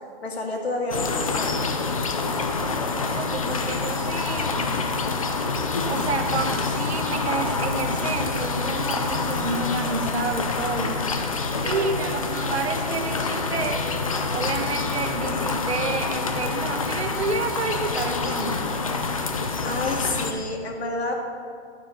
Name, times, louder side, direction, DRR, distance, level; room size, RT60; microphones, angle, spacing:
voice 1, 0.2-1.8 19.6-21.1, left 2 dB, 70° left, 2 dB, 2.2 m, -29 dB
sound 1, 0.9-20.3, left 4 dB, 30° left, 0.6 m, -27 dB
voice 2, 3.1-4.7 5.9-11.0 11.6-13.8 14.3-18.8, right 4 dB, 75° right, 6 dB, 1.4 m, -29 dB
sound 2, 6.0-11.0, right 4 dB, 25° right, 1.6 m, -48 dB
sound 3, 10.8-15.3, right 6 dB, 45° right, 0.9 m, -40 dB
11.0 x 9.5 x 5.2 m, 2.3 s
hypercardioid pair, 175°, 33 cm